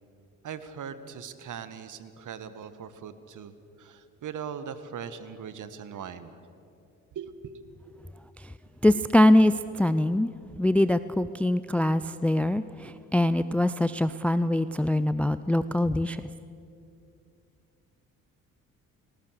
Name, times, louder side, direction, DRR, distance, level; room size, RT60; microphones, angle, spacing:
voice 1, 0.4-3.5 3.8-6.4 7.1-7.6, right 7 dB, 45° right, 12 dB, 1.7 m, -40 dB
voice 2, 8.8-9.5 9.8-10.3 10.6-16.2, left 1 dB, 5° left, 15 dB, 0.5 m, -23 dB
29.5 x 19.5 x 6.6 m, 2.6 s
figure-of-eight pair, 45°, 42 cm